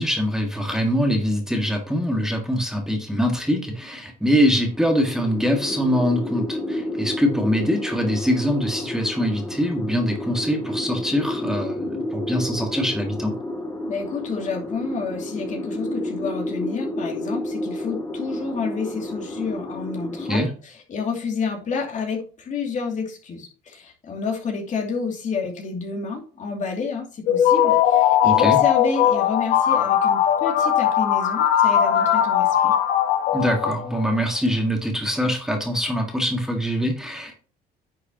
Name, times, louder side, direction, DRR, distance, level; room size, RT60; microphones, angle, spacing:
voice 1, 0.0-13.3 20.3-20.5 28.2-28.6 33.3-37.4, equal, 5° right, 2 dB, 1.8 m, -23 dB
sound 1, 4.5-20.4, left 1 dB, 15° left, 2.1 m, -31 dB
voice 2, 13.9-20.4 20.9-32.8, left 5 dB, 45° left, 1 dB, 2.6 m, -29 dB
sound 2, 27.3-34.1, left 10 dB, 80° left, 1.1 m, -19 dB
10.5 x 6.5 x 2.9 m, 0.37 s
cardioid pair, 110°, 17 cm